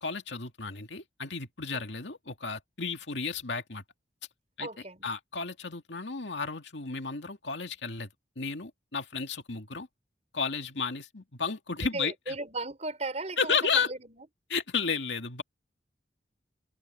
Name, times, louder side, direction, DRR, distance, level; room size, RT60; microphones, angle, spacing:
voice 1, 0.0-3.8 4.6-4.7 5.0-8.1 8.4-9.9 10.3-12.4 13.4-13.9 14.5-15.4, left 5 dB, 80° left, 2.3 m, -32 dB
voice 2, 4.6-5.1 11.8-14.2, right 2 dB, 40° right, 4.7 m, -37 dB
head